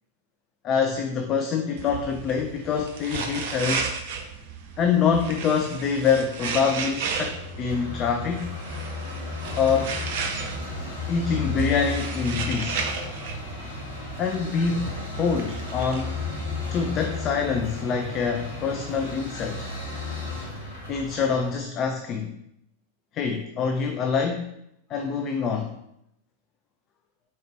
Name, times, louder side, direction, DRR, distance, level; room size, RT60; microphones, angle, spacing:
voice 1, 0.6-3.9 4.8-8.5 9.6-10.0 11.1-12.8 14.2-16.2 16.7-19.7 20.9-22.4 23.1-24.5 24.9-25.7, left 6 dB, 30° left, 5 dB, 0.4 m, -25 dB
sound 1, 1.8-17.6, right 5 dB, 50° right, 0.5 m, -35 dB
sound 2, 7.2-21.5, left 3 dB, 60° left, 1.8 m, -34 dB
4.1 x 3.9 x 3.3 m, 0.77 s
figure-of-eight pair, 90°, 0 cm